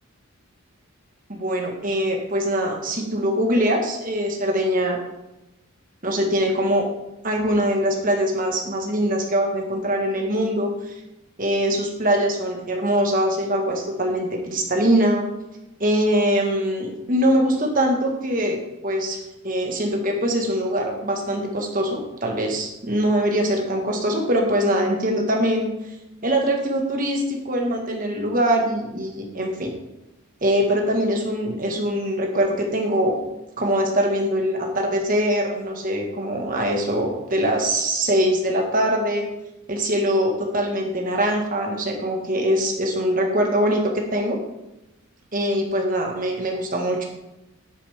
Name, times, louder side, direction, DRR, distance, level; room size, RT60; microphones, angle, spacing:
voice 1, 1.3-5.0 6.0-6.8 7.2-10.9 11.4-15.3 15.8-19.2 19.4-25.7 26.2-29.7 30.4-33.2 33.6-39.3 39.7-44.4 45.3-47.0, equal, 35° right, 1 dB, 1.5 m, -22 dB
9.3 x 8.6 x 3.6 m, 0.96 s
head